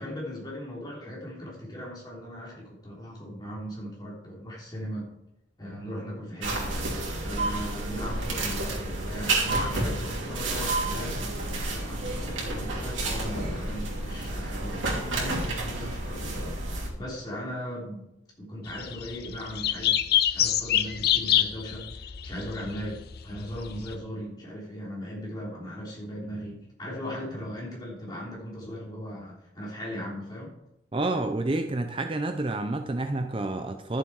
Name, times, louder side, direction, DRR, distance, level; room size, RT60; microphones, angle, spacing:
voice 1, 0.0-5.1 5.6-6.7 7.2-18.0 18.4-30.5, equal, 20° left, -4 dB, 3.3 m, -38 dB
sound 1, 6.4-16.9, right 2 dB, 85° right, 3.0 m, -30 dB
sound 2, 18.7-23.9, left 11 dB, 50° left, 0.6 m, -27 dB
voice 2, 30.9-34.0, right 2 dB, 25° right, 6 dB, 0.5 m, -29 dB
12.0 x 7.3 x 4.7 m, 0.86 s
head